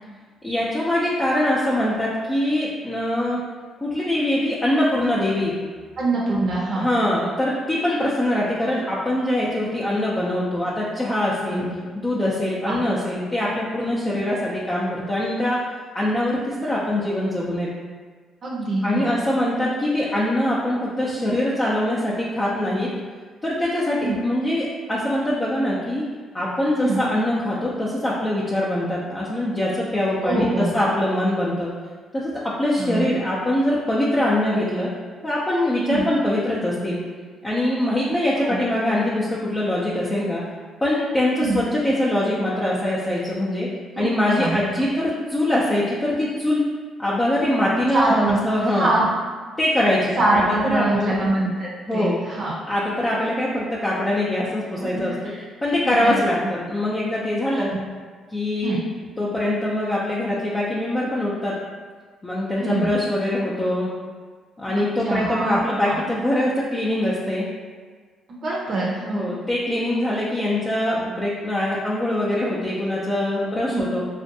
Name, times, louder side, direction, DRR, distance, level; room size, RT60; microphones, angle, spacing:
voice 1, 0.4-3.4 3.8-5.6 6.7-11.6 12.0-15.6 15.9-17.7 18.8-22.9 23.4-26.1 26.3-31.7 32.1-34.9 35.2-37.0 37.4-40.4 40.8-43.7 44.0-46.6 47.0-48.9 49.6-50.4 50.7-51.2 51.9-52.2 52.7-55.1 55.6-57.7 58.3-58.8 59.2-61.5 62.2-63.9 64.6-67.5 69.1-74.0, left 1 dB, 25° left, -7 dB, 0.5 m, -23 dB
voice 2, 6.0-6.9 11.5-11.8 12.6-12.8 18.4-19.1 24.0-24.2 26.8-27.0 30.2-30.7 32.8-33.1 35.9-36.1 38.4-38.6 41.4-41.6 44.0-44.1 44.4-44.6 47.9-48.4 48.7-49.1 50.2-52.6 55.2-55.4 55.8-56.2 57.5-57.8 58.6-58.8 62.6-63.0 64.7-65.6 65.8-66.0 68.3-69.3 73.7-73.8, right 2 dB, 55° right, -4 dB, 0.5 m, -24 dB
2.4 x 2.2 x 2.6 m, 1.5 s
supercardioid pair, 60°, 0 cm